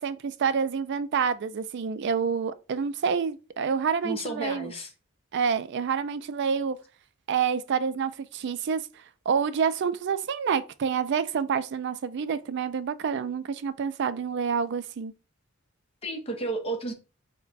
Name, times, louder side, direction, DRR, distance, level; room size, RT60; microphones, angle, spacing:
voice 1, 0.0-4.7 5.3-6.8 7.3-8.8 9.3-15.1, right 6 dB, 55° right, 0.3 m, -28 dB
voice 2, 4.0-4.9 16.0-16.9, right 2 dB, 25° left, 0.8 m, -32 dB
4.1 x 2.2 x 3.9 m
head